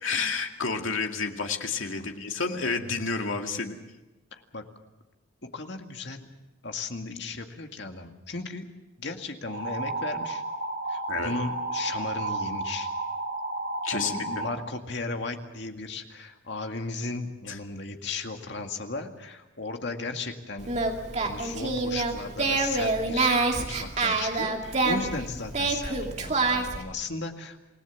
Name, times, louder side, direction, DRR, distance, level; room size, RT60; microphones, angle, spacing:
voice 1, 0.0-3.8 11.1-11.3 13.8-14.2 17.5-17.6, left 4 dB, 80° left, 4 dB, 2.2 m, -30 dB
voice 2, 4.3-4.6 5.5-6.3 6.6-8.7 9.0-10.4 10.9-12.9 13.9-20.7 21.2-27.6, left 3 dB, 60° left, 4 dB, 2.1 m, -36 dB
sound 1, 9.5-14.5, right 2 dB, 60° right, 3.6 m, -32 dB
Singing, 20.6-26.8, right 3 dB, 35° right, 2.5 m, -27 dB
28.0 x 18.0 x 7.2 m, 1.1 s
head